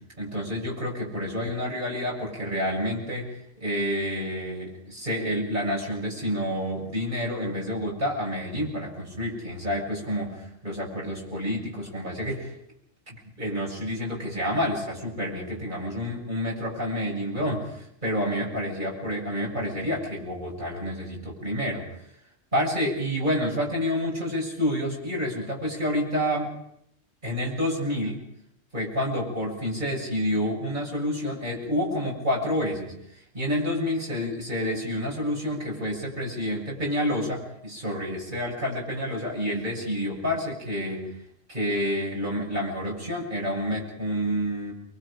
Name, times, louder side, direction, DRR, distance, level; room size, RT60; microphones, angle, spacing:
voice 1, 0.2-12.6 13.1-21.9 22.5-26.5 27.2-28.2 28.7-41.1 41.5-44.7, equal, 45° right, -2 dB, 7.4 m, -29 dB
29.5 x 23.0 x 5.1 m, 0.76 s
omnidirectional pair, 1.2 m